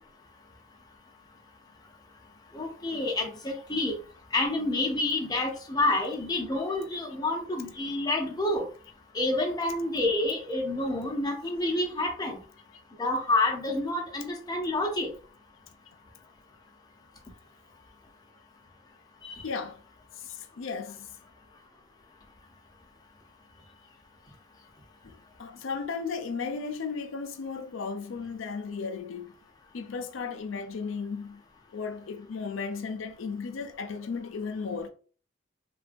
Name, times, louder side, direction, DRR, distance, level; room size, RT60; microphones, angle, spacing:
voice 1, 2.5-4.0 4.3-8.6 9.1-12.4 13.0-15.1 19.2-19.4, left 2 dB, 20° left, 0.6 m, -28 dB
voice 2, 19.4-19.8 20.2-21.2 25.0-29.3 29.7-31.4 31.7-34.9, left 5 dB, 75° left, 0.5 m, -35 dB
3.2 x 2.2 x 2.5 m
head